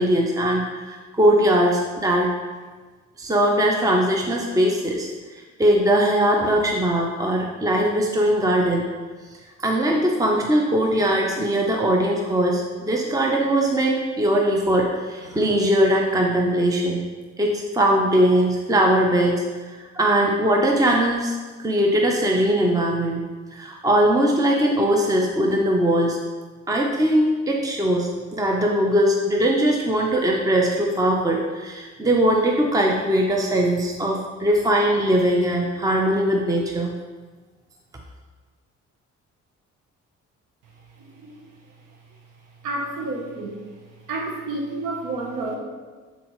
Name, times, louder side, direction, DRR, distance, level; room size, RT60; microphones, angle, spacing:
voice 1, 0.0-2.3 3.2-5.1 5.6-8.8 9.6-17.0 17.4-19.4 19.8-21.4 21.6-23.2 23.5-26.2 26.7-36.9, right 1 dB, 10° right, 0 dB, 0.7 m, -20 dB
voice 2, 41.0-41.5 42.6-43.7 44.1-45.6, right 2 dB, 85° right, 0 dB, 1.0 m, -30 dB
8.4 x 4.0 x 3.1 m, 1.4 s
cardioid pair, 90°, 30 cm